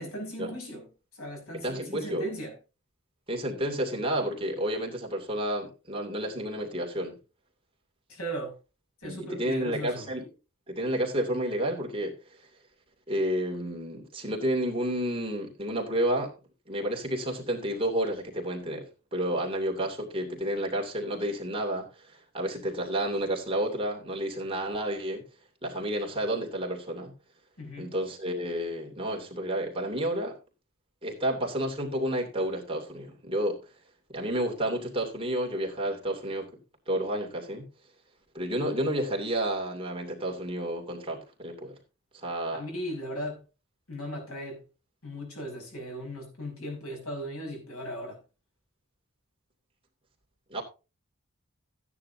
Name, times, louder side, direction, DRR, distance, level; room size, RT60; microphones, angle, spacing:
voice 1, 0.0-2.6 8.1-8.6 9.0-10.1 27.6-27.9 42.5-43.4 43.9-44.6 45.0-48.2, equal, 90° left, 6.1 m, -37 dB
voice 2, 1.6-2.2 3.3-7.2 9.0-10.3 10.7-12.2 13.1-16.3 16.7-25.2 25.6-27.1 27.8-30.3 31.0-33.6 34.1-36.5 36.9-37.7 38.3-41.7 42.1-42.6 50.5-50.6, right 1 dB, 25° right, 2.7 m, -30 dB
14.0 x 9.8 x 2.8 m
head